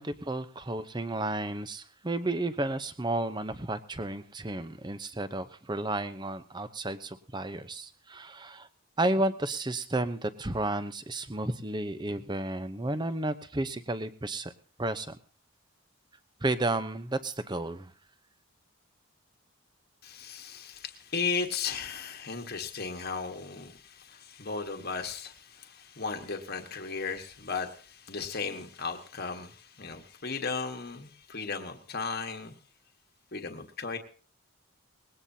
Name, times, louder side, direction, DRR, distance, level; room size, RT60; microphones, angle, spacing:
voice 1, 0.0-8.7 9.0-14.5 14.8-15.2 16.4-17.9, right 2 dB, 20° right, 11 dB, 0.8 m, -32 dB
voice 2, 20.0-32.5 33.3-34.0, left 5 dB, 45° left, 4 dB, 1.4 m, -36 dB
20.5 x 17.5 x 2.8 m, 0.40 s
head